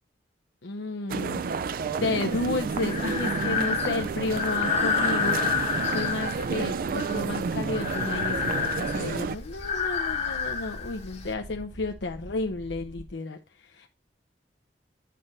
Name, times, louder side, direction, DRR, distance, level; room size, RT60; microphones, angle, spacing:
voice 1, 0.6-1.5 1.9-5.4 5.9-13.4 13.7-13.9, left 2 dB, 90° left, 5 dB, 0.6 m, -32 dB
sound 1, 1.1-9.4, right 5 dB, 55° right, 0.4 m, -30 dB
Breathing, 2.3-11.3, left 5 dB, 40° left, 1.0 m, -30 dB
sound 2, 7.8-13.1, equal, 80° right, 1.8 m, -46 dB
9.2 x 3.3 x 5.3 m, 0.29 s
head